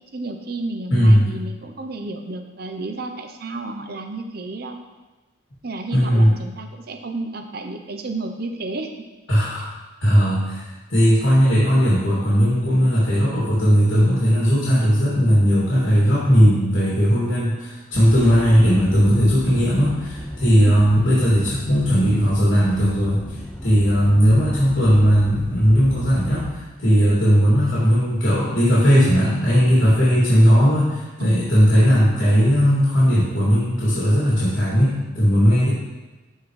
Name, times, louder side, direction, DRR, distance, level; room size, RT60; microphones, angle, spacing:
voice 1, 0.1-4.8 5.6-8.9 9.6-9.7 20.7-20.8 31.2-31.4, right 2 dB, 55° right, 5 dB, 0.7 m, -31 dB
voice 2, 0.9-1.3 5.9-6.3 9.3-9.7 10.0-23.2 23.6-35.7, equal, 80° left, -8 dB, 2.6 m, -17 dB
sound 1, 17.9-26.5, left 1 dB, 10° left, 0.5 m, -35 dB
13.0 x 4.6 x 3.3 m, 1.2 s
head